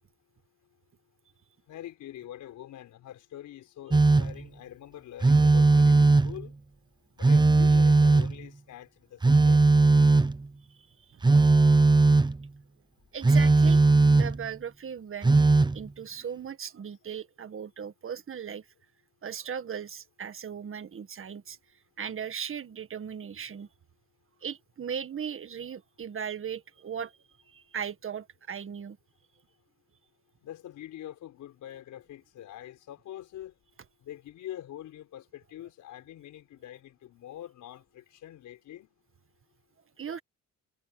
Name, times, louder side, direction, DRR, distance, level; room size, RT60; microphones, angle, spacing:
voice 1, 1.7-6.5 7.2-9.6 30.4-33.5 34.0-38.9, left 12 dB, 80° left, 5.0 m, -44 dB
Telephone, 3.9-4.4 5.2-6.4 7.2-8.4 9.2-10.5 11.2-12.4 13.2-14.5 15.2-15.8, right 3 dB, 15° right, 0.7 m, -19 dB
voice 2, 11.0-11.4 13.1-15.4 15.7-18.7 19.2-21.6 22.0-23.7 24.4-27.1 27.5-29.0 40.0-40.2, right 7 dB, 45° right, 1.8 m, -38 dB
cardioid pair, 90°, 30 cm